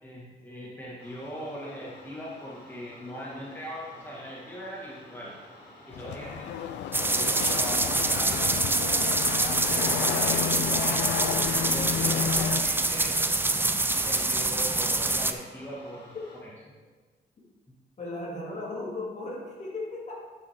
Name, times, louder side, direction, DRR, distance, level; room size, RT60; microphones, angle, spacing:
voice 1, 0.0-5.4 5.9-6.5 6.9-8.7 9.4-11.1 11.6-13.3 13.9-16.2 16.4-16.5 17.7-17.8, equal, 10° left, -6 dB, 1.8 m, -40 dB
sound 1, 1.0-16.4, left 1 dB, 65° left, 2.6 m, -51 dB
sound 2, 5.9-12.6, left 9 dB, 90° left, 0.4 m, -32 dB
voice 2, 6.0-6.4 18.0-20.2, left 2 dB, 40° left, -4 dB, 2.7 m, -36 dB
sound 3, 6.9-15.3, right 2 dB, 10° right, 0.5 m, -26 dB
10.0 x 6.0 x 3.7 m, 1.4 s
cardioid pair, 95°, 17 cm